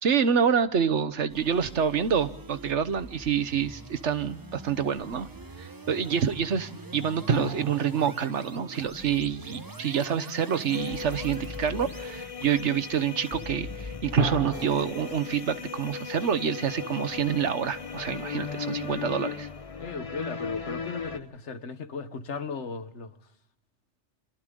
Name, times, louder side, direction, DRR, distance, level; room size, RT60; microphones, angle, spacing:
voice 1, 0.0-5.3 5.6-19.5, right 7 dB, 90° right, 1.4 m, -27 dB
sound 1, 1.3-16.5, right 2 dB, 20° right, 1.0 m, -45 dB
sound 2, 7.3-10.1 14.2-17.4, right 3 dB, 50° right, 1.6 m, -34 dB
sound 3, 10.7-21.2, left 6 dB, 30° left, 1.0 m, -37 dB
voice 2, 19.8-23.2, left 5 dB, 80° left, 1.5 m, -36 dB
29.0 x 27.0 x 3.8 m
omnidirectional pair, 1.2 m